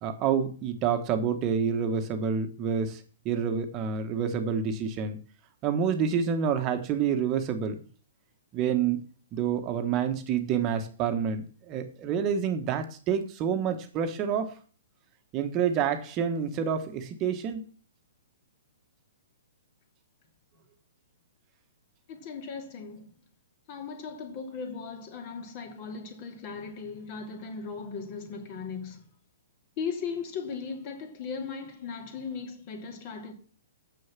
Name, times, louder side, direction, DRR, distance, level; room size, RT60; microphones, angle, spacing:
voice 1, 0.0-5.2 5.6-7.8 8.5-9.0 9.3-14.5 15.3-17.7, right 7 dB, 30° right, 1.2 m, -28 dB
voice 2, 22.1-23.2 23.7-29.1 29.8-33.3, left 5 dB, 40° left, 2.9 m, -37 dB
7.1 x 6.5 x 7.4 m
hypercardioid pair, 135°, 0 cm